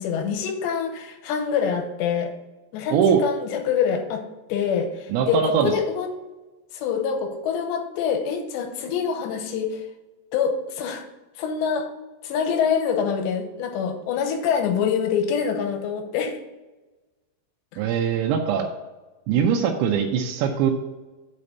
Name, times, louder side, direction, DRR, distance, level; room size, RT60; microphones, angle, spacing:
voice 1, 0.0-2.3 2.7-4.2 4.5-6.1 6.7-9.8 10.3-11.1 11.4-11.9 12.2-16.3 17.7-17.8, left 7 dB, 85° left, 5 dB, 3.1 m, -25 dB
voice 2, 2.9-3.2 5.1-5.7 17.8-18.7 19.3-20.7, right 7 dB, 85° right, 0 dB, 3.0 m, -21 dB
8.5 x 4.2 x 6.5 m, 1.1 s
omnidirectional pair, 5.0 m